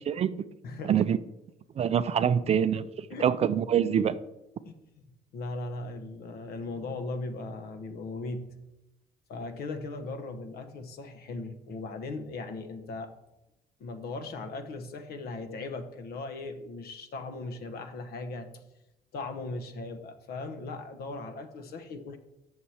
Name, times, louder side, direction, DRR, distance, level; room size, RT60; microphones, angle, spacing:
voice 1, 0.1-0.4 0.8-1.2 1.8-4.2, right 8 dB, 40° right, 14 dB, 0.4 m, -25 dB
voice 2, 0.6-0.9 3.1-3.3 4.6-4.7 5.3-8.5 9.3-13.1 13.8-18.6 19.1-22.2, left 3 dB, 65° left, 8 dB, 1.0 m, -38 dB
7.8 x 6.5 x 4.3 m, 0.93 s
cardioid pair, 110°, 17 cm